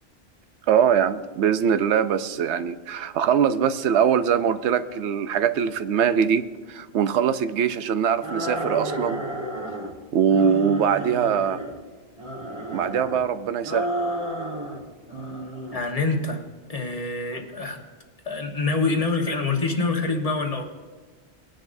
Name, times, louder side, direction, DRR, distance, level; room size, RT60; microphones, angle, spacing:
voice 1, 0.7-9.2 10.1-11.6 12.7-13.9, right 8 dB, 85° right, 11 dB, 0.9 m, -22 dB
sound 1, 8.2-9.9 10.3-11.8 12.2-13.2 13.6-14.8 15.1-15.8, right 1 dB, 25° right, 1.5 m, -31 dB
voice 2, 15.7-16.4 16.7-17.8 18.2-20.6, left 3 dB, 35° left, 2 dB, 1.4 m, -25 dB
20.0 x 10.5 x 2.6 m, 1.5 s
omnidirectional pair, 1.1 m